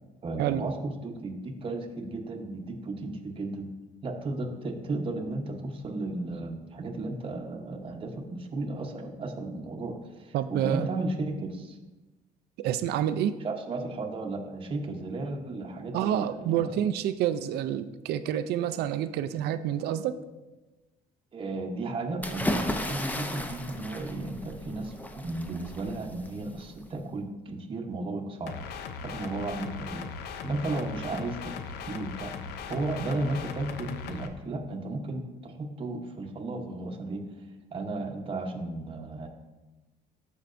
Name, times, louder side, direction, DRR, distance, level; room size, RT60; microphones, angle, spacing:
voice 1, 0.2-3.7 4.0-11.8 13.4-16.8 21.3-28.5 29.0-30.1 30.4-31.6 31.9-32.3 32.7-37.2 37.7-39.3, right 2 dB, 30° right, 2 dB, 0.9 m, -34 dB
voice 2, 10.3-10.9 12.6-13.4 15.9-20.2, right 10 dB, 75° right, 11 dB, 0.4 m, -28 dB
sound 1, 22.2-27.0, left 1 dB, 10° left, 0.6 m, -35 dB
sound 2, 28.5-34.3, left 6 dB, 80° left, 0.6 m, -39 dB
13.0 x 4.6 x 2.6 m, 1.1 s
cardioid pair, 110°, 17 cm